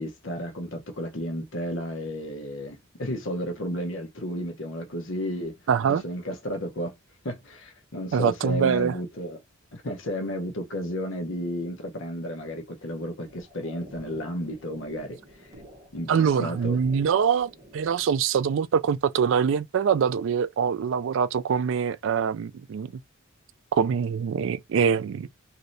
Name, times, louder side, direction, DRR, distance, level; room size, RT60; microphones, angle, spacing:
voice 1, 0.0-5.6 5.9-7.0 7.2-9.4 9.7-15.5 15.9-16.8, equal, 60° left, 0.8 m, -33 dB
voice 2, 5.7-6.0 8.1-8.9 16.1-22.9 23.7-25.3, right 7 dB, 65° right, 0.3 m, -24 dB
sound 1, 13.2-18.3, right 1 dB, 35° right, 0.9 m, -49 dB
3.1 x 2.7 x 2.6 m
head